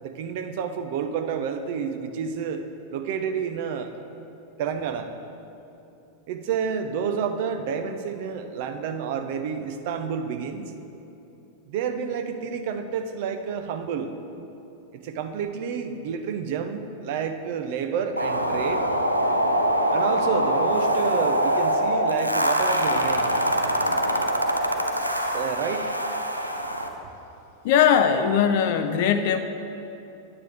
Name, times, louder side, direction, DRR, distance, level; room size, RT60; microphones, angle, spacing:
voice 1, 0.0-2.6 2.9-3.9 4.6-5.1 6.3-10.7 11.7-14.1 14.9-18.9 19.9-23.3 25.3-25.9, right 6 dB, 50° right, 8 dB, 0.6 m, -29 dB
sound 1, 18.2-26.9, equal, 90° right, 0.6 m, -24 dB
voice 2, 27.6-29.4, left 8 dB, 50° left, 8 dB, 0.4 m, -20 dB
9.5 x 8.7 x 3.5 m, 2.9 s
figure-of-eight pair, 90°, 0 cm